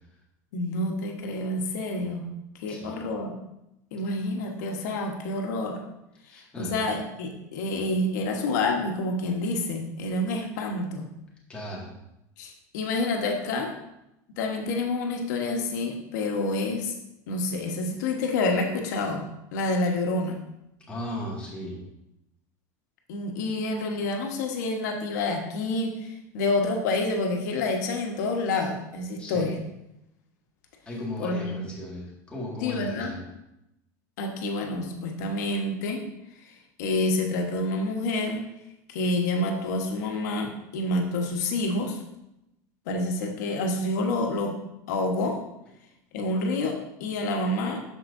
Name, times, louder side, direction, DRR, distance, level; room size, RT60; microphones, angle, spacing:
voice 1, 0.5-2.2 2.6-3.3 3.9-5.8 6.3-11.1 12.4-13.7 14.4-16.9 17.3-19.2 19.5-20.4 23.1-29.6 31.2-31.6 32.6-33.1 34.2-36.0 36.4-38.4 38.9-42.0 42.9-44.5 44.9-45.4 46.1-47.8, left 2 dB, 85° left, 2 dB, 1.2 m, -28 dB
voice 2, 2.7-3.0 6.3-6.8 11.5-11.9 20.9-21.8 29.2-29.5 30.9-33.2, left 1 dB, 10° left, -4 dB, 1.9 m, -36 dB
12.5 x 4.6 x 2.6 m, 0.87 s
supercardioid pair, 155°, 9 cm